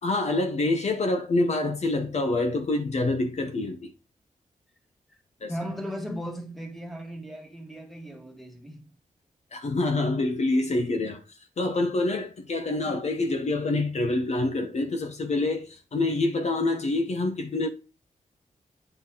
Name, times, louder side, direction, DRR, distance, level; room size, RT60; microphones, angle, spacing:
voice 1, 0.0-3.9 5.4-5.5 9.5-11.2 11.6-17.7, left 2 dB, 55° left, 1.0 m, -26 dB
voice 2, 5.5-8.9, equal, ahead, 1.9 m, -37 dB
9.0 x 4.0 x 4.0 m
wide cardioid pair, 90°, 14 cm